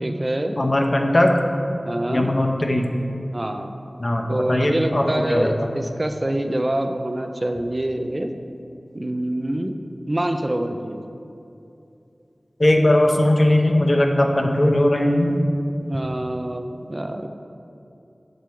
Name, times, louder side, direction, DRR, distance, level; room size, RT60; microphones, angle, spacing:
voice 1, 0.0-0.6 1.9-2.3 3.3-3.8 4.3-8.3 8.9-9.7 10.1-11.0 15.8-17.3, right 1 dB, 35° right, 6 dB, 0.5 m, -26 dB
voice 2, 0.6-1.3 2.1-2.9 4.0-5.7 12.6-15.4, left 1 dB, 50° left, 2 dB, 0.8 m, -19 dB
7.6 x 5.4 x 4.6 m, 2.7 s
wide cardioid pair, 40°, 0 cm